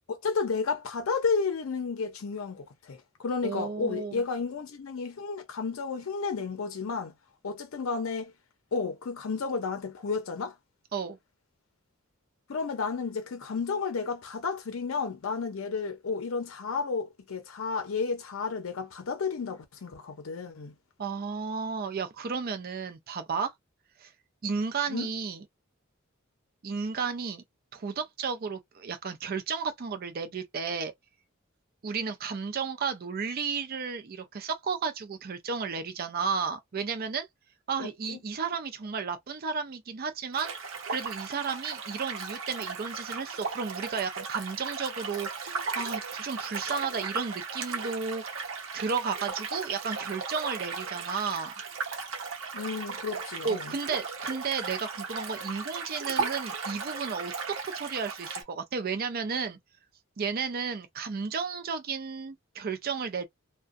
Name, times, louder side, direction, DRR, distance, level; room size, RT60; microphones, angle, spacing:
voice 1, 0.1-7.1 7.4-8.3 8.7-10.6 12.5-20.7 24.9-25.1 37.8-38.2 52.5-53.7, left 4 dB, 80° left, 0.5 m, -32 dB
voice 2, 3.4-4.2 10.9-11.2 21.0-23.5 24.0-24.1 24.4-25.4 26.6-27.4 27.7-30.9 31.8-37.3 37.7-40.5 40.9-48.2 48.7-51.5 53.4-59.6 60.2-63.3, right 5 dB, 45° right, 0.4 m, -33 dB
sound 1, 40.3-58.4, right 5 dB, 70° right, 0.8 m, -36 dB
2.4 x 2.2 x 2.4 m
head